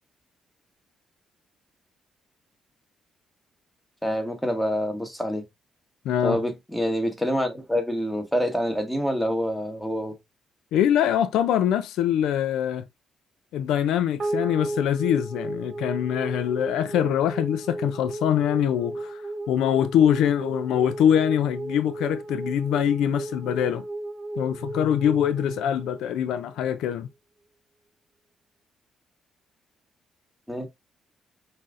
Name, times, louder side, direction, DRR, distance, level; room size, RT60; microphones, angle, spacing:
voice 1, 4.0-5.4 6.2-10.1 30.5-30.7, equal, 5° left, 1.1 m, -26 dB
voice 2, 6.0-6.4 10.7-12.8 13.5-19.2 19.5-23.8 24.4-27.1, left 10 dB, 85° left, 0.3 m, -23 dB
sound 1, 14.2-26.7, right 2 dB, 40° right, 0.9 m, -34 dB
5.5 x 2.6 x 2.4 m
cardioid pair, 90°, 0 cm